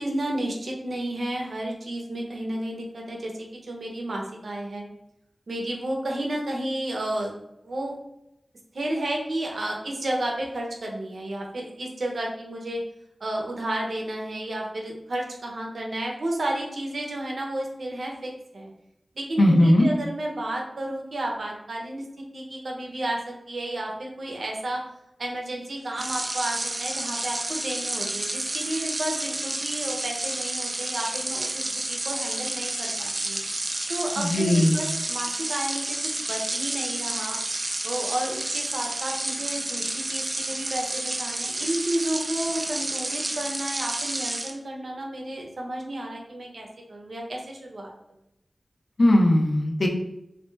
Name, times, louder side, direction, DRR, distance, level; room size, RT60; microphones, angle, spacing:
voice 1, 0.0-4.9 5.5-7.3 7.6-7.9 8.7-12.8 13.2-18.7 19.1-24.8 25.2-31.6 31.9-33.4 33.9-36.0 36.3-37.4 37.8-47.9, right 1 dB, 80° right, 0 dB, 0.7 m, -32 dB
voice 2, 19.4-19.9 34.2-34.8 49.0-49.9, left 1 dB, 65° left, 1 dB, 0.7 m, -19 dB
sound 1, 25.9-44.5, right 2 dB, 45° right, 0.5 m, -30 dB
3.2 x 2.7 x 3.3 m, 0.85 s
wide cardioid pair, 50°, 0 cm